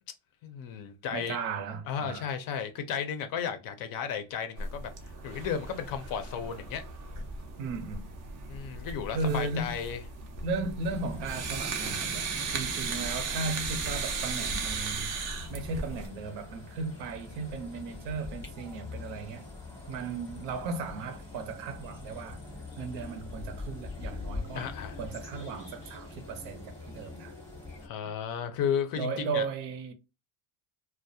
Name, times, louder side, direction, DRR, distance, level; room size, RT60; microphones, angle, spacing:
voice 1, 0.4-1.4 1.9-4.9 5.2-6.8 8.5-10.0 24.5-25.0 27.8-29.5, left 7 dB, 45° left, 0.5 m, -34 dB
voice 2, 1.1-2.3 7.6-8.0 9.1-9.8 10.4-15.1 15.5-19.4 19.9-22.4 22.8-24.7 25.0-27.3 28.0-28.1 28.9-29.9, right 4 dB, 75° right, 0.7 m, -36 dB
sound 1, 4.6-16.1, right 4 dB, 35° right, 0.4 m, -36 dB
sound 2, 10.8-27.9, left 3 dB, 5° left, 0.7 m, -44 dB
2.3 x 2.1 x 2.6 m
cardioid pair, 140°, 48 cm